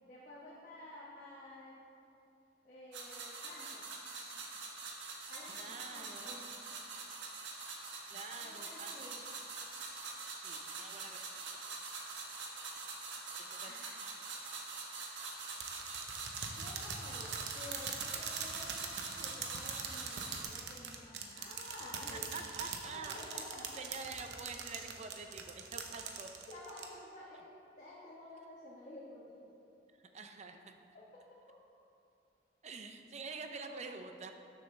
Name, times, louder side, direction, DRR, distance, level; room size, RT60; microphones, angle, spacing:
voice 1, 0.1-1.8 2.6-4.0 4.3-4.4 5.3-6.6 8.4-9.2 13.6-13.9 16.5-22.3 22.9-23.8 26.5-27.5 27.8-29.5 30.9-31.0 33.6-33.9, left 1 dB, 45° left, -7 dB, 1.3 m, -51 dB
sound 1, 2.9-20.4, right 3 dB, 85° right, 1.4 m, -44 dB
voice 2, 5.5-6.6 8.1-9.0 10.4-11.6 12.7-12.9 13.4-13.7 22.3-26.3 30.1-30.8 32.6-34.3, right 4 dB, 40° right, 5 dB, 0.6 m, -47 dB
sound 2, 15.6-26.9, right 6 dB, 70° right, 0.9 m, -42 dB
12.5 x 7.2 x 3.3 m, 2.7 s
head